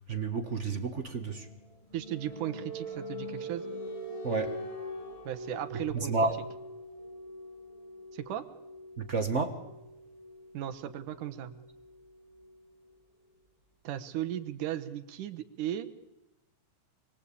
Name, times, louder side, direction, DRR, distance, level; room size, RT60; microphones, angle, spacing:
voice 1, 0.1-1.5 4.2-4.6 5.9-6.4 9.1-9.6, right 4 dB, 60° right, 6 dB, 0.7 m, -30 dB
sound 1, 1.1-12.7, equal, 10° left, 2.3 m, -43 dB
voice 2, 1.9-3.6 5.2-6.2 8.1-8.5 10.5-11.5 13.8-15.9, right 11 dB, 75° right, 9 dB, 2.7 m, -36 dB
25.5 x 23.0 x 8.5 m, 0.96 s
omnidirectional pair, 3.7 m